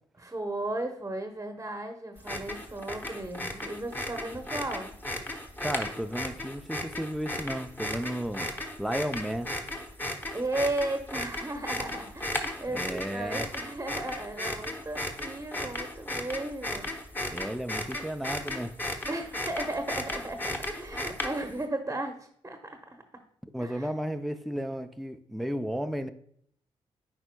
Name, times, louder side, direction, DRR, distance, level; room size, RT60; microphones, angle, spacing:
voice 1, 0.2-4.9 10.3-16.9 19.1-23.0 23.6-23.9, right 2 dB, 20° right, 0.9 m, -35 dB
sound 1, 2.2-21.6, left 1 dB, 15° left, 1.1 m, -35 dB
voice 2, 5.6-8.5 8.8-9.5 12.7-13.5 17.3-18.8 23.5-26.1, equal, ahead, 0.5 m, -33 dB
10.0 x 4.3 x 2.2 m
hypercardioid pair, 40°, 12 cm